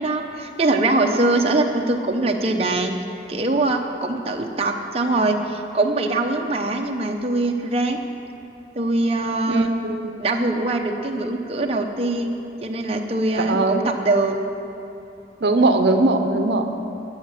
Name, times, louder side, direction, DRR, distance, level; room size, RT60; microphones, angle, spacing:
voice 1, 0.0-3.0 3.3-8.0 8.8-9.7 10.2-14.4, right 2 dB, 35° right, 2 dB, 0.7 m, -22 dB
voice 2, 9.5-10.2 13.4-13.9 15.4-16.9, right 2 dB, 70° right, 6 dB, 0.7 m, -20 dB
13.5 x 6.5 x 7.6 m, 2.8 s
head